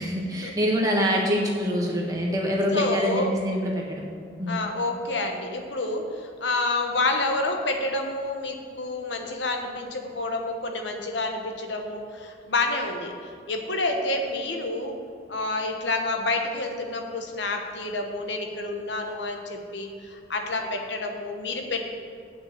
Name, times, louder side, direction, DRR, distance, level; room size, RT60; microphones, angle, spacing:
voice 1, 0.0-4.1 4.4-4.6, equal, 20° right, -2 dB, 1.4 m, -25 dB
voice 2, 2.7-3.3 4.5-15.0 15.3-21.8, left 2 dB, 80° left, 3 dB, 1.2 m, -29 dB
7.6 x 5.9 x 7.6 m, 2.3 s
head